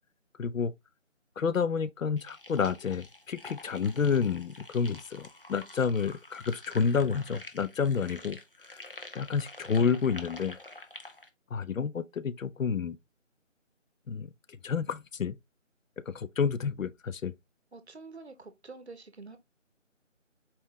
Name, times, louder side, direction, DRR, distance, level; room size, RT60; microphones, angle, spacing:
voice 1, 0.4-0.7 1.4-8.4 8.7-8.8 9.1-10.6 11.5-13.0 14.1-14.3 14.6-15.4 16.1-17.3, left 6 dB, 85° left, 0.6 m, -29 dB
sound 1, 2.2-11.3, left 2 dB, 45° left, 0.6 m, -48 dB
voice 2, 17.7-19.4, right 3 dB, 55° right, 0.8 m, -47 dB
4.4 x 3.6 x 3.0 m
figure-of-eight pair, 175°, 39 cm